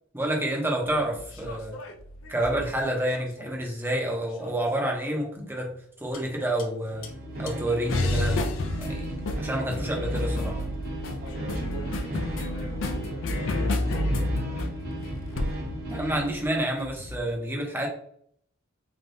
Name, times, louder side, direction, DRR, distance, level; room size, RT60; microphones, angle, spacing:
voice 1, 0.1-1.8 2.3-5.7 6.0-7.1 7.4-8.5 8.8-9.1 9.4-10.6 15.9-17.9, right 1 dB, 10° right, 0 dB, 0.7 m, -28 dB
sound 1, 0.9-3.5 4.4-4.9 6.1-6.3 6.6-6.7 7.0-7.1 7.5-17.2, left 1 dB, 65° left, 0.4 m, -31 dB
sound 2, 6.9-16.4, right 1 dB, 50° right, 1.3 m, -36 dB
voice 2, 11.2-14.4, right 2 dB, 80° right, -3 dB, 0.9 m, -42 dB
3.3 x 2.2 x 2.6 m, 0.62 s
head